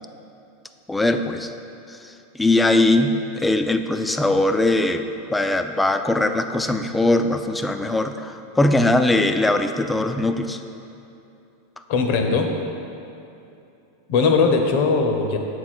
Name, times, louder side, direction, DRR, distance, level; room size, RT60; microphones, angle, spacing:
voice 1, 0.9-1.5 1.9-10.6, left 2 dB, 10° left, 8 dB, 0.4 m, -21 dB
voice 2, 11.9-12.5 14.1-15.4, left 4 dB, 60° left, 4 dB, 0.8 m, -19 dB
7.0 x 4.8 x 4.2 m, 2.8 s
hypercardioid pair, 110°, 0 cm